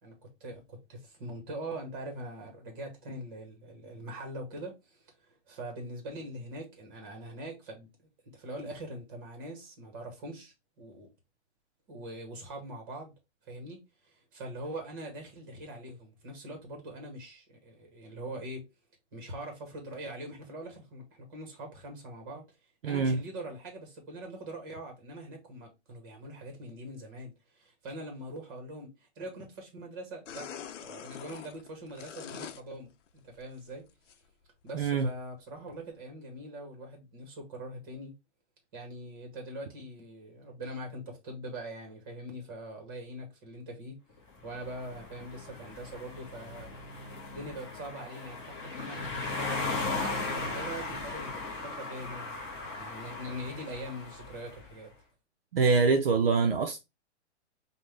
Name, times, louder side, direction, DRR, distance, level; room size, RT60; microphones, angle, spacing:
voice 1, 0.0-5.1 5.5-11.1 11.9-13.1 13.4-13.8 14.0-18.6 19.1-22.4 22.8-30.4 30.8-32.9 33.2-33.8 34.6-38.1 38.7-43.9 44.4-46.7 47.1-52.3 52.8-54.9, right 1 dB, 20° right, 0.9 m, -43 dB
voice 2, 22.8-23.2 34.7-35.1 55.5-56.8, right 4 dB, 55° right, 0.5 m, -24 dB
sound 1, 30.3-32.6 33.1-34.1 34.7-34.8 35.2-35.3 35.7-35.8, left 8 dB, 80° left, 0.7 m, -44 dB
sound 2, 44.4-54.7, left 3 dB, 15° left, 0.8 m, -37 dB
5.4 x 2.2 x 3.2 m
hypercardioid pair, 175°, 36 cm